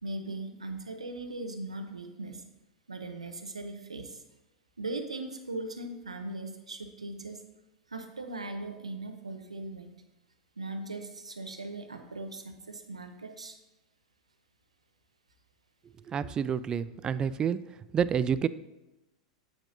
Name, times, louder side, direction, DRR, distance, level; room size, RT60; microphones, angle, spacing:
voice 1, 0.0-2.4 2.9-4.2 4.8-7.4 7.9-9.9 10.6-13.6, right 2 dB, 85° right, 7 dB, 0.8 m, -39 dB
voice 2, 16.1-17.6 17.9-18.5, right 7 dB, 25° right, 16 dB, 0.3 m, -28 dB
8.7 x 7.6 x 2.7 m, 0.99 s
figure-of-eight pair, 90°, 3 cm